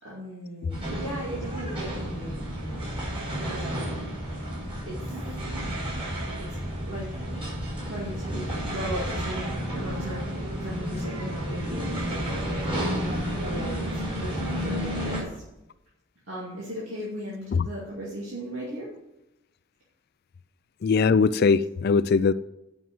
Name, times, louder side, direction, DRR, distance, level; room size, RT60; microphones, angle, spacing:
voice 1, 0.0-2.5 3.4-4.1 4.8-5.1 6.4-6.6 6.9-7.1 7.9-10.3 10.6-12.4 12.9-13.1 13.4-15.4 16.2-18.9, equal, 75° right, 2.6 m, -37 dB
sound 1, 0.7-15.2, equal, 25° right, 4.8 m, -31 dB
voice 2, 20.8-22.3, left 5 dB, 50° left, 0.3 m, -21 dB
9.2 x 6.2 x 7.7 m
head